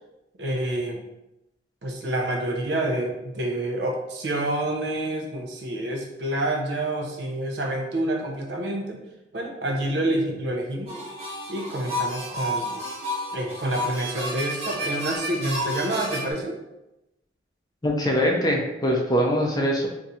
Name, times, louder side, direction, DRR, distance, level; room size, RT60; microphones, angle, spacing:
voice 1, 0.4-1.0 1.8-9.0 9.3-10.9 11.5-12.8 13.3-16.6, right 1 dB, 70° right, 0 dB, 0.6 m, -28 dB
sound 1, 10.9-16.3, equal, 35° right, 0.9 m, -31 dB
voice 2, 17.8-19.9, equal, 20° left, -1 dB, 0.5 m, -22 dB
2.7 x 2.4 x 4.1 m, 0.93 s
head